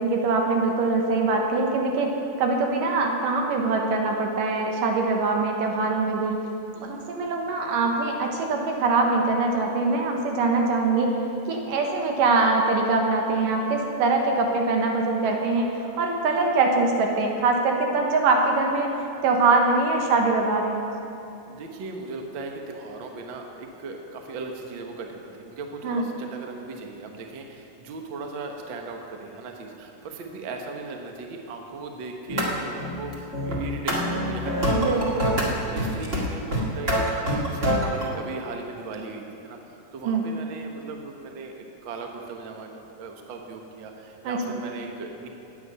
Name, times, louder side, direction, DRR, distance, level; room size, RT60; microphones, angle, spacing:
voice 1, 0.0-6.4 6.8-11.2 11.5-18.9 19.2-20.9 25.8-26.1 34.7-35.5 40.0-40.3 44.2-44.6, right 3 dB, 80° right, 1 dB, 2.9 m, -23 dB
voice 2, 21.4-42.7 43.0-45.3, right 3 dB, 60° right, 2 dB, 1.2 m, -38 dB
sound 1, 32.3-32.5 32.8-35.5 35.8-36.2 36.5-38.1, equal, 30° right, 1.8 m, -25 dB
16.0 x 9.4 x 5.5 m, 2.8 s
omnidirectional pair, 3.8 m